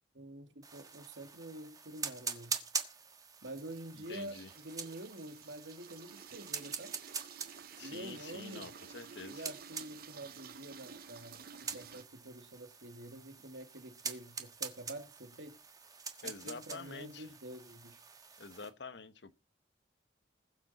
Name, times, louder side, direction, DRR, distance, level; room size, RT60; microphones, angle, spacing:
voice 1, 0.1-2.5 3.4-7.0 7.8-8.7 9.3-11.4 11.7-15.6 16.2-18.0, right 1 dB, 80° right, 2.2 m, -47 dB
sound 1, 0.6-18.7, right 5 dB, 20° right, 1.4 m, -45 dB
sound 2, 3.6-12.0, right 7 dB, 50° right, 0.7 m, -52 dB
voice 2, 4.0-4.5 7.8-9.4 16.2-17.3 18.4-19.3, left 4 dB, 70° left, 1.1 m, -47 dB
20.5 x 7.5 x 4.2 m
head